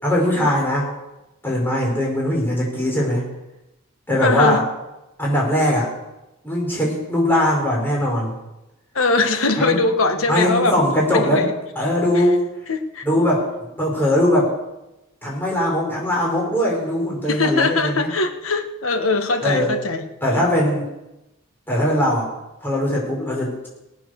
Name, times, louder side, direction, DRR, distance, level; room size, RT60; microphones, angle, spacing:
voice 1, 0.0-0.9 1.4-3.3 4.1-4.6 5.2-5.9 6.4-8.4 9.6-9.8 10.3-11.5 11.8-12.4 13.0-13.4 13.8-14.5 15.2-18.1 19.4-19.7 20.2-20.9 21.7-22.3 22.6-23.7, left 1 dB, 10° left, -3 dB, 5.3 m, -20 dB
voice 2, 4.2-4.6 8.9-10.7 11.1-11.5 12.1-12.2 12.7-13.0 17.3-20.0, left 3 dB, 80° left, 6 dB, 1.6 m, -21 dB
19.0 x 8.9 x 6.6 m, 0.96 s
head